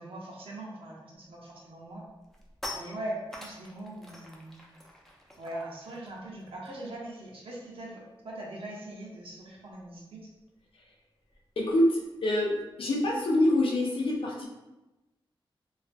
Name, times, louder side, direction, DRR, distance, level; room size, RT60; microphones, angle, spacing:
voice 1, 0.0-2.1 2.7-4.6 5.4-10.3, right 1 dB, 75° right, -3 dB, 0.6 m, -41 dB
sound 1, 1.3-1.5 1.9-7.8 8.1-8.3 8.6-13.6, left 1 dB, 5° left, 0.3 m, -48 dB
voice 2, 11.6-14.5, left 1 dB, 75° left, -2 dB, 0.5 m, -26 dB
2.4 x 2.2 x 2.5 m, 1.0 s
wide cardioid pair, 145°, 9 cm